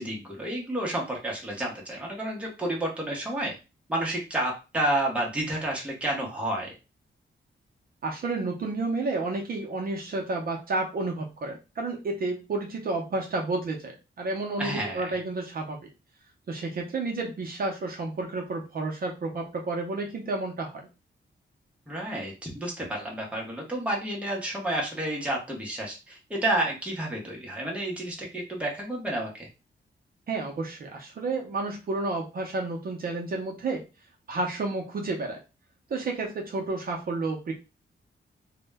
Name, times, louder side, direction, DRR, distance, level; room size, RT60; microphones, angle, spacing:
voice 1, 0.0-3.5 3.9-6.7 14.6-15.2 21.9-29.5, right 1 dB, 5° right, -2 dB, 0.6 m, -30 dB
voice 2, 8.0-15.8 16.5-20.9 30.3-33.8 34.3-35.4 35.9-37.5, right 3 dB, 50° right, 0 dB, 0.5 m, -31 dB
2.1 x 2.0 x 3.3 m, 0.30 s
wide cardioid pair, 180°, 20 cm